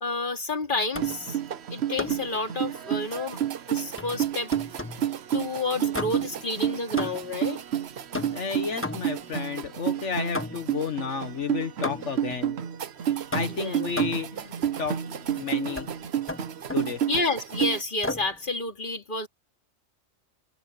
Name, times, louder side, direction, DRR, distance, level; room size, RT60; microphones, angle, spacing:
voice 1, 0.0-1.4 1.7-3.4 3.7-4.5 5.3-7.6 13.5-13.9 17.1-19.3, left 3 dB, 45° left, 2.8 m, -30 dB
sound 1, 0.9-1.3 2.0-2.3 4.0-5.1 5.9-6.4 7.0-7.4 8.1-9.3 10.3-10.8 11.8-12.3 13.3-14.3 15.8-15.9 16.3-16.9 18.0-18.4, left 2 dB, 10° left, 1.1 m, -34 dB
sound 2, 1.0-17.8, right 10 dB, 65° right, 1.1 m, -30 dB
voice 2, 8.3-12.6 13.1-15.9 16.7-17.0, left 5 dB, 75° left, 1.8 m, -32 dB
omnidirectional pair, 1.2 m